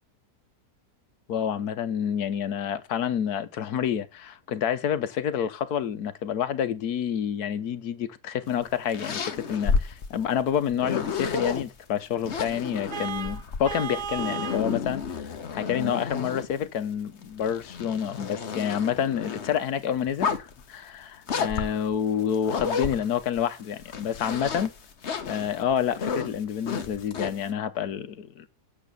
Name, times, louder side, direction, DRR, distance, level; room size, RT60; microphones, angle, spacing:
voice 1, 1.3-15.0 15.5-24.7 25.2-28.5, left 8 dB, 70° left, 1.4 m, -28 dB
sound 1, 8.5-11.6 12.2-16.6 17.2-19.6 20.1-20.6 21.3-23.4 23.8-27.5, left 5 dB, 45° left, 1.3 m, -31 dB
Vehicle horn car horn honking, 12.9-14.7, right 8 dB, 70° right, 1.7 m, -34 dB
8.8 x 7.7 x 6.7 m
omnidirectional pair, 1.7 m